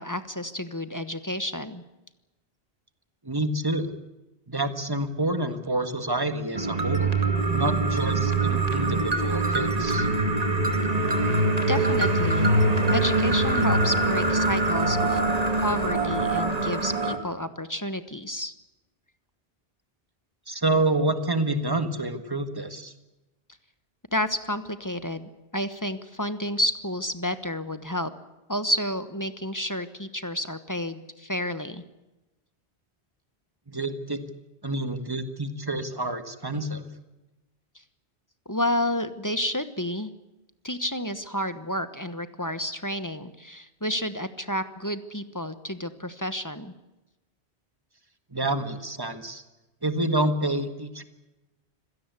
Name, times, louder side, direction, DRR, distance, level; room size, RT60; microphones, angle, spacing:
voice 1, 0.0-1.8 11.7-12.6 12.9-15.2 15.6-18.5 24.1-28.1 28.5-31.8 38.5-40.1 40.6-46.7, left 1 dB, 20° left, 11 dB, 1.2 m, -30 dB
voice 2, 3.2-3.9 4.5-7.1 7.5-10.1 20.5-22.9 33.7-34.2 34.6-36.8 48.3-49.4 49.8-51.0, right 2 dB, 20° right, 9 dB, 1.7 m, -28 dB
sound 1, 6.5-17.2, right 2 dB, 35° right, 2.4 m, -23 dB
25.5 x 17.0 x 8.3 m, 1.0 s
omnidirectional pair, 1.1 m